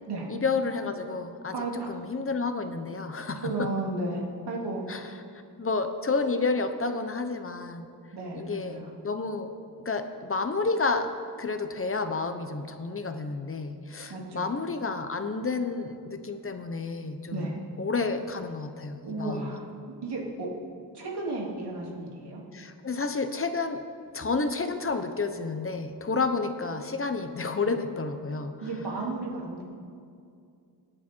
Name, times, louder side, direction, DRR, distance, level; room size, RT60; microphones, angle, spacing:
voice 1, 0.3-1.5 1.9-3.7 4.9-5.0 5.6-7.9 8.3-9.5 9.8-11.1 11.4-17.5 17.8-19.5 22.5-23.8 24.1-28.5, left 4 dB, 35° left, 7 dB, 0.9 m, -30 dB
voice 2, 1.5-1.9 3.4-4.9 8.1-8.9 14.1-14.5 17.3-17.6 19.0-19.7 20.0-20.5 20.9-22.4 28.6-29.6, right 2 dB, 85° right, -2 dB, 3.1 m, -33 dB
26.5 x 10.0 x 4.6 m, 2.4 s
wide cardioid pair, 160°, 39 cm